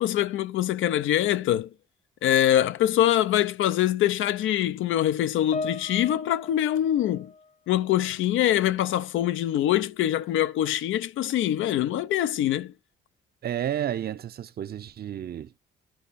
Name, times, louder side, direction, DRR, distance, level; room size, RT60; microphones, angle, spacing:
voice 1, 0.0-1.7 2.2-7.3 7.7-12.7, left 12 dB, 80° left, 0.6 m, -24 dB
Piano, 5.5-8.2 8.4-8.8 9.5-9.7, left 3 dB, 40° left, 1.0 m, -39 dB
voice 2, 13.4-15.6, right 10 dB, 50° right, 0.7 m, -31 dB
11.5 x 4.2 x 4.1 m
cardioid pair, 90°, 20 cm